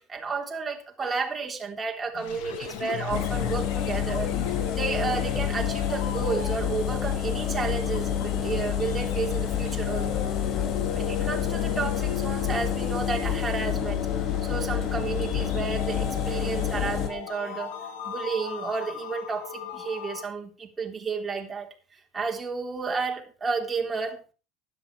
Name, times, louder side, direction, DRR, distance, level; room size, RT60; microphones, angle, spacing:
voice 1, 0.0-10.2 10.9-14.1 14.4-17.7 18.0-24.2, right 5 dB, 15° right, 1 dB, 3.4 m, -32 dB
sound 1, 2.1-20.2, left 9 dB, 75° left, 2.2 m, -37 dB
Engine, 3.1-17.1, left 9 dB, 45° left, 2.8 m, -28 dB
12.5 x 11.0 x 5.0 m, 0.34 s
supercardioid pair, 135°, 0 cm